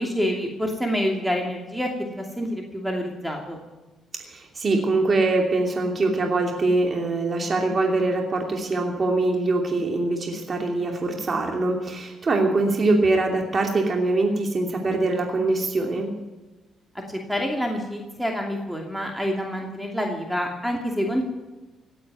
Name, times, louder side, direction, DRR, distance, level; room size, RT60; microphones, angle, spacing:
voice 1, 0.0-3.6 17.1-21.3, equal, 5° right, 1 dB, 2.7 m, -27 dB
voice 2, 4.2-16.1, right 2 dB, 40° right, 2 dB, 2.8 m, -23 dB
17.5 x 8.7 x 9.3 m, 1.2 s
cardioid pair, 90°, 0 cm